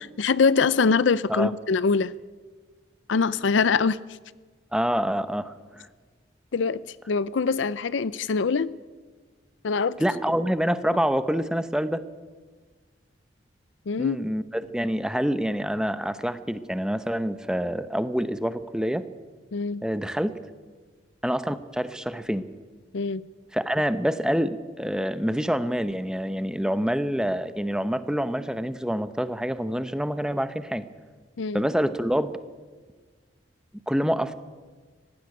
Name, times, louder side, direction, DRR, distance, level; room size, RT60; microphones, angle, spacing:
voice 1, 0.0-2.1 3.1-4.0 6.5-6.8 7.1-8.7 9.6-10.0 13.9-14.2 19.5-19.8 22.9-23.2 31.4-31.6, left 5 dB, 80° left, 19 dB, 0.5 m, -23 dB
voice 2, 4.7-5.9 10.0-12.0 14.0-19.1 19.8-20.4 21.2-22.4 23.5-30.9 31.5-32.3 33.9-34.3, equal, 5° right, 12 dB, 0.8 m, -26 dB
18.5 x 15.5 x 9.7 m, 1.4 s
head